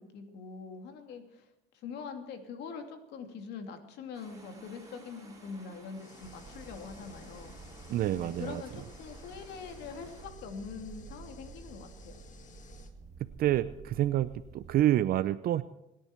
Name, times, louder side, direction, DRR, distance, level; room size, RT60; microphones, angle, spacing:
voice 1, 0.0-1.5 1.7-7.6 8.1-12.2, left 5 dB, 80° left, 5 dB, 2.7 m, -43 dB
sound 1, 4.1-10.3, right 2 dB, 20° right, 5.6 m, -56 dB
sound 2, 6.0-12.9, left 6 dB, 45° left, 1.9 m, -56 dB
sound 3, 6.2-14.8, right 5 dB, 45° right, 1.7 m, -51 dB
voice 2, 7.9-8.6 13.4-15.6, right 13 dB, 65° right, 13 dB, 0.6 m, -28 dB
28.5 x 10.5 x 4.5 m, 0.90 s
cardioid pair, 110°, 17 cm